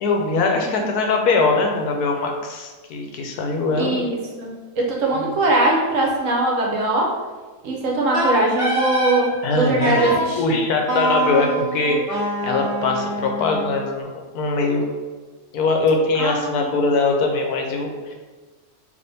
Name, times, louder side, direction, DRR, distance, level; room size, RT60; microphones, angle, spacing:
voice 1, 0.0-4.0 5.1-5.2 9.4-12.2 12.4-14.1 14.3-14.8 15.5-18.2, left 3 dB, 85° left, 2 dB, 1.2 m, -21 dB
voice 2, 3.8-7.1 7.6-10.6 16.2-16.7, right 2 dB, 65° right, -1 dB, 1.1 m, -21 dB
Wind instrument woodwind instrument, 8.1-9.2 9.8-10.3 10.9-13.9, right 1 dB, 20° right, 1.5 m, -24 dB
3.5 x 2.9 x 4.0 m, 1.3 s
omnidirectional pair, 1.6 m